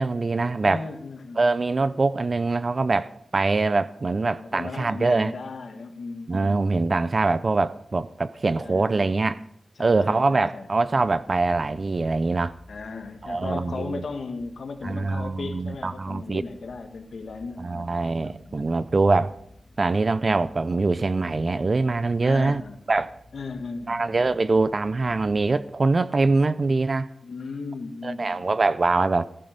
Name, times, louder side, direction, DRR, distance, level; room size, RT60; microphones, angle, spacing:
voice 1, 0.0-0.8 1.4-5.3 6.3-9.4 9.8-12.5 13.2-14.0 14.8-16.4 17.6-19.3 19.8-22.6 22.9-23.1 23.9-27.1 28.0-29.3, right 3 dB, 45° right, 0.5 m, -23 dB
voice 2, 0.6-1.4 4.0-6.7 8.6-9.1 9.8-10.7 12.7-18.5 22.2-22.8 23.3-24.2 27.2-28.5, left 4 dB, 75° left, 1.6 m, -36 dB
sound 1, 10.7-26.1, left 1 dB, 60° left, 2.9 m, -54 dB
14.5 x 12.0 x 5.2 m
wide cardioid pair, 95°, 0 cm